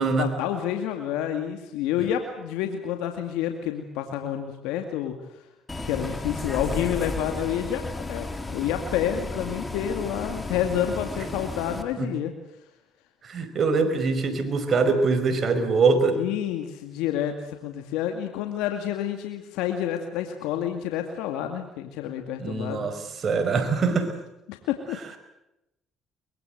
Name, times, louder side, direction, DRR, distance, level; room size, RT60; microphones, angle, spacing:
voice 1, 0.2-5.1 5.8-7.8 8.1-12.3 16.2-22.9 24.5-25.0, left 10 dB, 85° left, 6 dB, 2.2 m, -29 dB
Bus, 5.7-11.8, left 2 dB, 20° left, 3.5 m, -33 dB
voice 2, 13.2-16.2 22.4-24.1, right 4 dB, 45° right, 8 dB, 5.1 m, -23 dB
23.5 x 22.0 x 8.0 m, 0.88 s
supercardioid pair, 80°, 0 cm